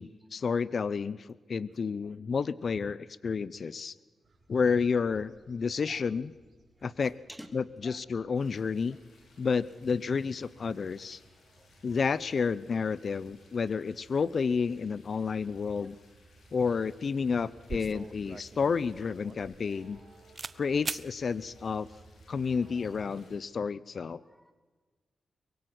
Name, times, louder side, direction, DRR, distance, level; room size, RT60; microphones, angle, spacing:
voice 1, 0.0-3.9 4.5-6.3 6.8-7.1 7.5-9.0 9.4-11.2 11.8-16.0 16.5-20.0 20.6-21.9 22.3-24.2, left 5 dB, 60° left, 19 dB, 0.7 m, -30 dB
sound 1, 4.2-23.3, right 2 dB, 60° right, 6.1 m, -60 dB
voice 2, 7.8-8.2 8.9-9.0 11.1-11.2 11.6-11.9 15.8-15.9 20.5-20.6 21.6-22.0 22.4-22.9 24.2-24.5, right 1 dB, 5° right, 7 dB, 3.1 m, -53 dB
sound 2, 8.3-23.3, left 3 dB, 85° left, 6.3 m, -64 dB
sound 3, 17.7-20.0 20.4-20.6 20.8-21.1, right 4 dB, 40° right, 0.8 m, -40 dB
24.0 x 22.5 x 6.1 m, 1.3 s
cardioid pair, 55°, 0 cm